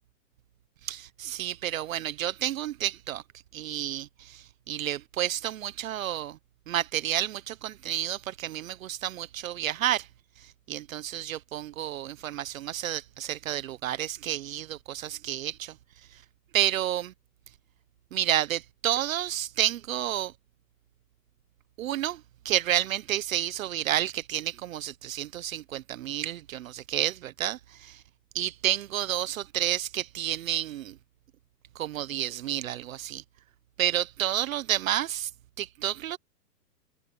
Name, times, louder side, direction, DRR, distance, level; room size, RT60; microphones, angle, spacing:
voice 1, 0.8-3.2 3.5-6.4 6.7-10.1 10.7-15.7 16.5-17.1 18.1-20.3 21.8-28.0 28.3-30.9 31.7-33.2 33.8-35.3 35.6-36.2, right 12 dB, 55° right, 1.0 m, -30 dB
hypercardioid pair, 160°, 49 cm